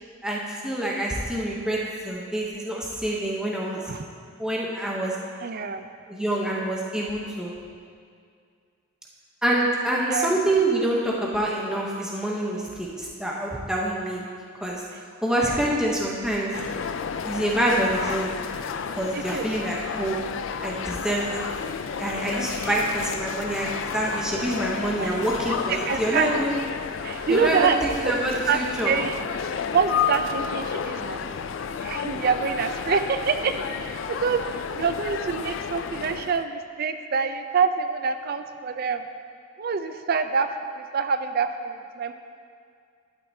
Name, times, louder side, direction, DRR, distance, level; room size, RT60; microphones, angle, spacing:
voice 1, 0.2-1.8 2.0-3.8 4.4-5.2 6.1-7.5 9.4-14.2 14.5-14.8 15.2-16.5 17.2-18.3 18.9-20.2 20.6-21.4 22.0-26.5 27.3-28.9, right 1 dB, 5° right, -4 dB, 0.8 m, -26 dB
voice 2, 5.4-5.9 10.1-10.4 15.4-15.8 19.1-19.6 22.6-22.7 25.0-25.1 25.7-26.3 27.0-28.1 28.5-28.6 28.8-29.2 29.7-31.5 31.8-33.6 33.8-39.0 39.6-42.1, right 5 dB, 45° right, 9 dB, 0.4 m, -26 dB
sound 1, 16.5-36.4, left 6 dB, 60° left, 0.3 m, -31 dB
11.5 x 9.0 x 2.7 m, 2.2 s
head